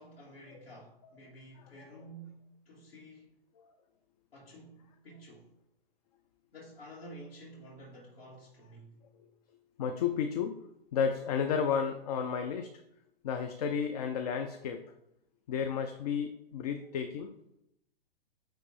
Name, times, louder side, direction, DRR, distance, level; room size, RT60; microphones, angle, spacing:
voice 1, 0.0-3.3 4.3-5.5 6.5-9.1, right 1 dB, 70° left, 2.0 m, -51 dB
voice 2, 9.8-10.6 10.9-12.7 13.2-14.9 15.5-17.3, left 7 dB, 40° left, 0.5 m, -32 dB
9.3 x 3.2 x 3.3 m
figure-of-eight pair, 115°, 31 cm